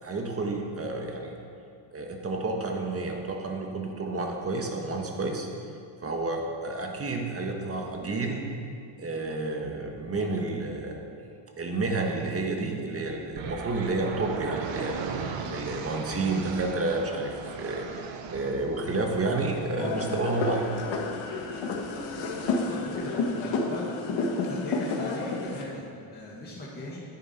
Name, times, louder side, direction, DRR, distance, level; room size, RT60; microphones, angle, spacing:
voice 1, 0.0-1.3 1.9-5.5 6.0-8.5 9.0-11.0 11.6-17.9 18.3-20.7, right 3 dB, 30° right, 2 dB, 1.6 m, -30 dB
sound 1, 13.4-23.2, right 5 dB, 75° right, 1.1 m, -39 dB
sound 2, 19.8-25.6, left 3 dB, 80° left, 1.5 m, -30 dB
voice 2, 22.5-24.0 24.4-27.0, left 1 dB, 20° left, -6 dB, 1.9 m, -39 dB
10.5 x 10.0 x 4.5 m, 2.5 s
cardioid pair, 105°, 46 cm